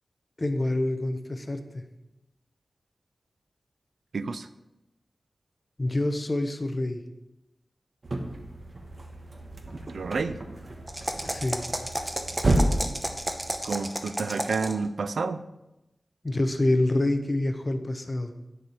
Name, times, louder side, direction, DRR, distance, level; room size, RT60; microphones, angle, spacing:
voice 1, 0.4-1.8 5.8-7.0 11.2-11.6 16.2-18.3, left 1 dB, 30° left, 7 dB, 0.9 m, -27 dB
voice 2, 4.1-4.5 9.9-10.4 13.6-15.4, right 4 dB, 90° right, 13 dB, 0.4 m, -29 dB
sound 1, 8.0-13.9, right 1 dB, 50° right, 1.1 m, -31 dB
sound 2, 10.9-14.9, right 1 dB, 15° right, 0.8 m, -32 dB
9.3 x 6.7 x 4.4 m, 0.95 s
wide cardioid pair, 85°, 0 cm